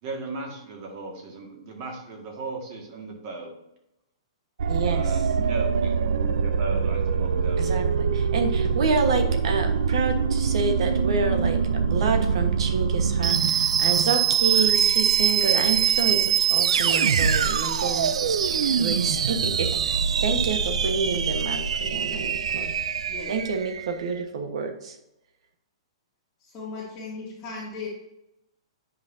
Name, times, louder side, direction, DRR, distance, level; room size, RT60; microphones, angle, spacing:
voice 1, 0.0-3.5 4.9-7.9, right 3 dB, 40° right, 1 dB, 1.9 m, -36 dB
sound 1, 4.6-23.9, right 7 dB, 85° right, 0.4 m, -23 dB
voice 2, 4.7-5.0 7.6-18.4 18.8-22.7 23.3-25.0, right 4 dB, 65° right, 6 dB, 1.2 m, -28 dB
voice 3, 26.4-27.9, left 4 dB, 25° left, -6 dB, 1.6 m, -37 dB
9.2 x 5.7 x 2.7 m, 0.87 s
hypercardioid pair, 150°, 3 cm